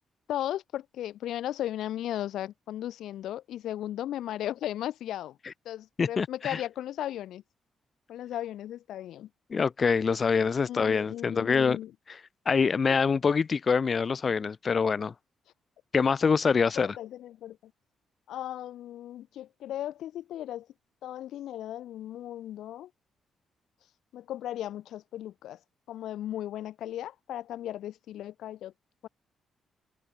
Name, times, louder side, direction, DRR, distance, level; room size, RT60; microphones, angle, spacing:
voice 1, 0.3-5.4 5.7-7.4 8.1-9.3 10.7-11.9 16.6-17.6 18.3-20.7 21.0-22.9 24.1-25.6 25.9-28.7 29.0-29.1, left 12 dB, 85° left, 5.4 m, -36 dB
voice 2, 6.0-6.6 9.5-11.8 12.5-15.1 15.9-17.0, left 5 dB, 30° left, 0.4 m, -25 dB
open air
cardioid pair, 160°, 0 cm